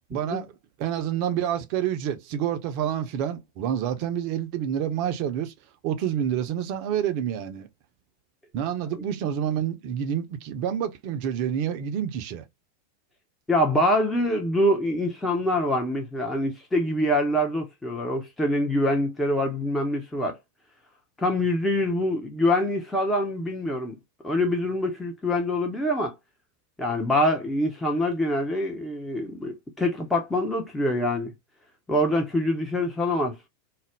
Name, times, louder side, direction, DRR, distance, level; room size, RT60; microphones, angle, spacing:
voice 1, 0.1-0.5 0.8-5.5 5.8-7.7 8.5-12.4, right 9 dB, 45° right, 0.5 m, -28 dB
voice 2, 13.5-20.4 21.2-24.0 24.2-26.1 26.8-31.3 31.9-33.4, left 1 dB, 10° left, 0.6 m, -25 dB
2.4 x 2.0 x 3.2 m
figure-of-eight pair, 90°, 0 cm